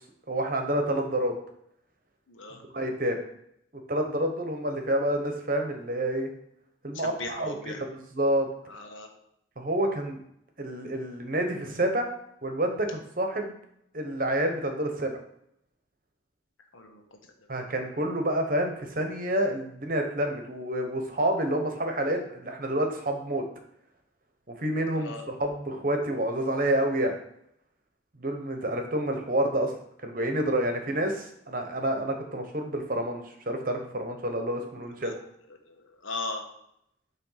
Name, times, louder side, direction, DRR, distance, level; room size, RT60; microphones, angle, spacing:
voice 1, 0.3-1.3 2.7-3.2 3.9-6.3 6.8-8.5 9.6-10.2 10.6-12.1 12.4-13.5 13.9-15.2 17.5-23.4 24.6-27.1 28.2-29.7 30.0-35.1, right 1 dB, 45° right, 4 dB, 1.0 m, -28 dB
voice 2, 2.3-2.6 6.9-7.8 8.7-9.1 16.7-17.0 25.0-25.2 35.0-35.1 35.7-36.4, left 3 dB, 85° left, 3 dB, 1.3 m, -38 dB
7.6 x 3.2 x 5.7 m, 0.74 s
head